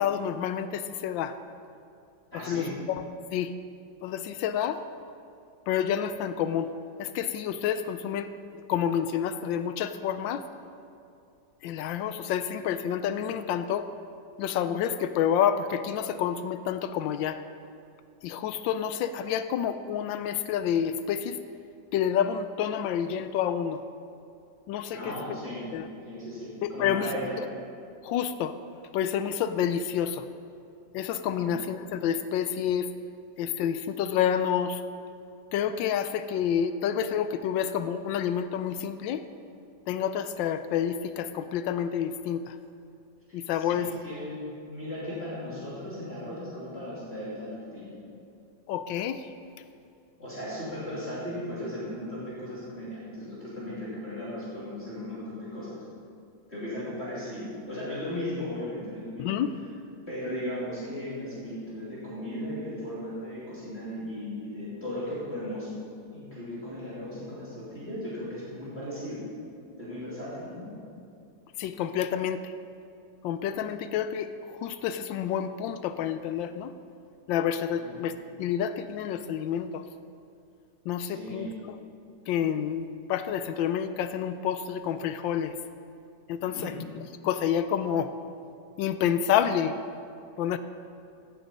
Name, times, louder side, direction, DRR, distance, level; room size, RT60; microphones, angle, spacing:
voice 1, 0.0-1.4 2.3-3.0 3.3-3.5 4.0-4.8 5.7-6.7 7.0-8.3 8.7-10.4 11.6-13.9 14.4-17.4 18.2-21.4 21.9-23.8 24.7-25.2 25.7-25.9 26.6-27.1 28.0-28.5 28.9-30.3 30.9-32.9 33.4-34.8 35.5-39.2 39.9-42.6 43.3-43.9 48.7-49.3 59.2-59.6 71.6-72.5 73.2-76.7 77.3-79.8 80.9-81.5 82.3-85.5 86.3-86.7 87.2-88.1 88.8-89.8 90.4-90.6, left 9 dB, 85° left, 11 dB, 1.3 m, -28 dB
voice 2, 2.3-2.7 24.9-25.7 26.1-27.4 43.5-47.9 50.2-55.7 56.5-59.4 60.1-65.7 66.1-69.2 69.8-70.7 77.7-78.0 81.0-81.6 86.4-86.8, left 1 dB, 35° left, -10 dB, 3.3 m, -36 dB
15.5 x 7.1 x 5.4 m, 2.5 s
omnidirectional pair, 2.0 m